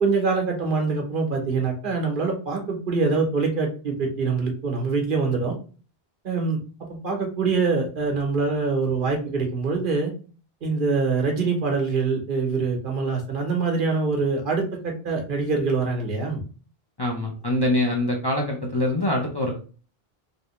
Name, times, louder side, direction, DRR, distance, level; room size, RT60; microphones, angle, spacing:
voice 1, 0.0-5.5 6.2-6.6 6.9-10.1 10.6-16.4, right 4 dB, 60° right, 2 dB, 1.0 m, -24 dB
voice 2, 17.0-19.6, left 1 dB, 30° left, -2 dB, 0.5 m, -24 dB
3.4 x 2.7 x 3.0 m, 0.38 s
omnidirectional pair, 1.0 m